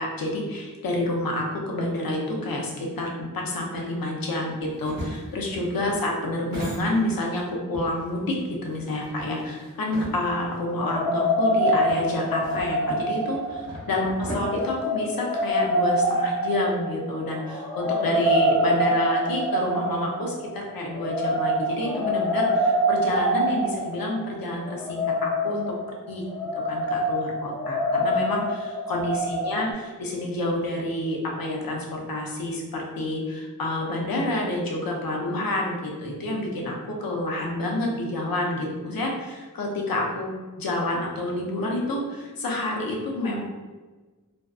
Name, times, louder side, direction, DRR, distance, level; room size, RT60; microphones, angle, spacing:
voice 1, 0.0-8.4 8.6-25.7 26.1-26.3 26.5-43.4, left 1 dB, 85° left, -1 dB, 0.6 m, -28 dB
sound 1, 4.6-7.4 7.7-10.6 10.9-11.0 11.9-15.5, equal, 75° right, 0.9 m, -38 dB
sound 2, 10.8-29.7, equal, 10° left, 0.6 m, -25 dB
2.5 x 2.2 x 2.3 m, 1.3 s
wide cardioid pair, 85°, 34 cm